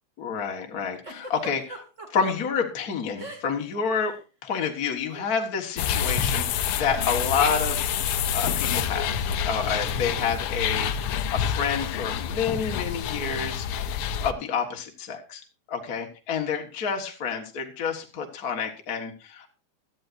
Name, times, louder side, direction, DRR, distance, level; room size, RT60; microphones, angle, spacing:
voice 1, 0.2-4.1 4.4-10.9 11.3-13.7 14.2-15.4 15.7-19.5, left 6 dB, 40° left, 3 dB, 1.5 m, -29 dB
Giggle, 1.0-2.3 3.2-3.7 3.9-4.2 5.1-5.3, right 2 dB, 25° right, 2.2 m, -40 dB
sound 1, 5.8-14.3, left 8 dB, 90° left, 1.2 m, -27 dB
17.5 x 12.0 x 2.6 m, 0.31 s
omnidirectional pair, 3.5 m